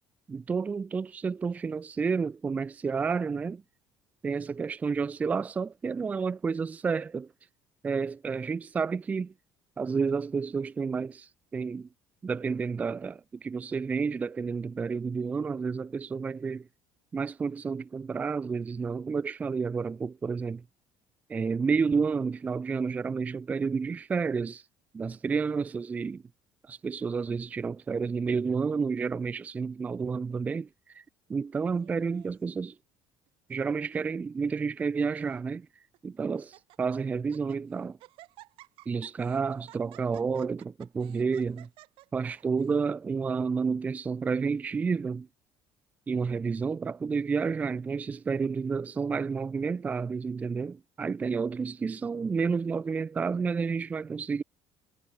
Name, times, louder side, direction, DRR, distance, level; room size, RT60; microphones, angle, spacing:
voice 1, 0.3-3.6 4.2-7.3 7.8-9.3 9.8-11.9 12.2-16.7 17.1-20.6 21.3-24.6 24.9-26.2 26.7-31.0 31.3-32.8 33.5-35.7 36.0-38.0 38.9-41.7 42.1-45.3 46.1-54.4, right 5 dB, 15° right, 0.4 m, -30 dB
Laughter, 31.7-32.6 33.3-33.6 33.9-34.0 34.8-35.4 35.9-36.0 36.4-36.8 37.2-37.6 38.0-42.8, right 18 dB, 60° right, 3.0 m, -55 dB
cardioid pair, 180°, 10 cm